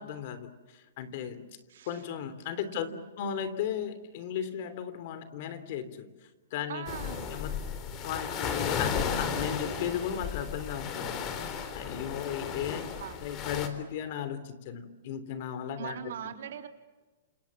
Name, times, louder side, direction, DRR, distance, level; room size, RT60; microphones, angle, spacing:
voice 1, 0.0-1.5 1.9-2.9 3.2-6.1 6.5-6.9 7.3-7.6 8.0-12.9 13.2-16.4, left 9 dB, 45° left, 13 dB, 3.1 m, -36 dB
voice 2, 1.7-2.0 2.7-3.0 6.7-7.3 12.7-13.2 15.8-16.7, right 9 dB, 70° right, 5 dB, 3.8 m, -41 dB
sound 1, 6.9-13.7, left 6 dB, 25° left, 3.6 m, -34 dB
28.5 x 28.0 x 7.2 m, 1.3 s
hypercardioid pair, 160°, 0 cm